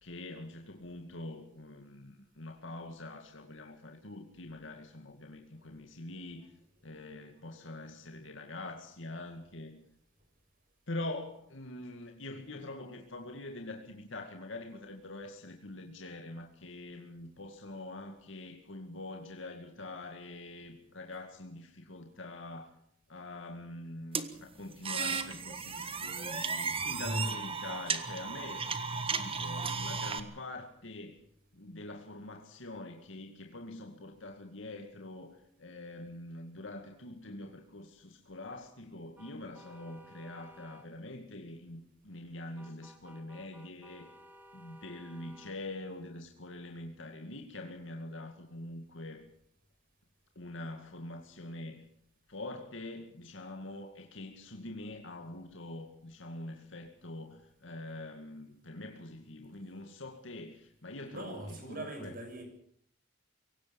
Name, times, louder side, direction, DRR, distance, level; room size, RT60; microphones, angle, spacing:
voice 1, 0.0-6.5 6.8-9.8 10.9-22.7 23.1-28.6 29.1-31.2 31.5-44.1 44.5-49.3 50.4-51.8 52.3-62.1, left 2 dB, 70° left, 3 dB, 2.2 m, -44 dB
sound 1, 24.1-30.2, right 5 dB, 30° right, 1.5 m, -34 dB
sound 2, 39.2-40.9 42.6-45.6, right 1 dB, 10° right, 1.9 m, -56 dB
voice 2, 61.1-62.4, right 2 dB, 45° right, 5 dB, 6.6 m, -43 dB
23.5 x 17.5 x 7.1 m, 0.65 s
head